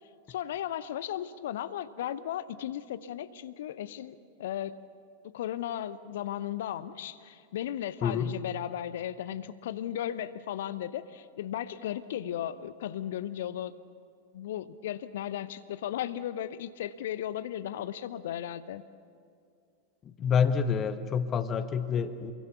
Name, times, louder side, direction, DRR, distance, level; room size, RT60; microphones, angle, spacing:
voice 1, 0.3-4.8 5.2-13.7 14.3-18.8, left 11 dB, 55° left, 15 dB, 0.8 m, -36 dB
voice 2, 8.0-8.3 20.0-22.3, left 6 dB, 25° left, 10 dB, 1.3 m, -28 dB
27.5 x 22.5 x 7.0 m, 2.3 s
figure-of-eight pair, 90°, 0 cm